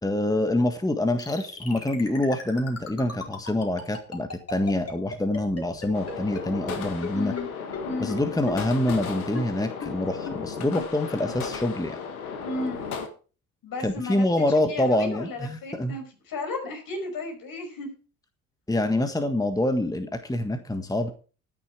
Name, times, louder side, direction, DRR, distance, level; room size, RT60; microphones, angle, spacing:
voice 1, 0.0-7.3 8.0-12.0 13.8-16.0 18.7-21.1, left 1 dB, 10° left, 8 dB, 1.5 m, -26 dB
sound 1, 1.2-6.4 6.7-6.8 7.0-7.1 7.4-7.5 7.7-7.8 8.1-8.2 8.5-8.6 8.9-9.0 9.4-9.5 9.8-9.9 10.3-10.4 10.8-10.9 11.3-11.4, left 4 dB, 35° left, 4.7 m, -35 dB
sound 2, 5.9-13.1, left 6 dB, 90° left, 1.7 m, -35 dB
voice 2, 7.1-7.5 7.8-8.1 12.4-12.8 13.6-14.2 14.6-17.9, left 2 dB, 55° left, 4 dB, 5.7 m, -33 dB
12.5 x 9.9 x 4.8 m, 0.37 s
hypercardioid pair, 60°, 42 cm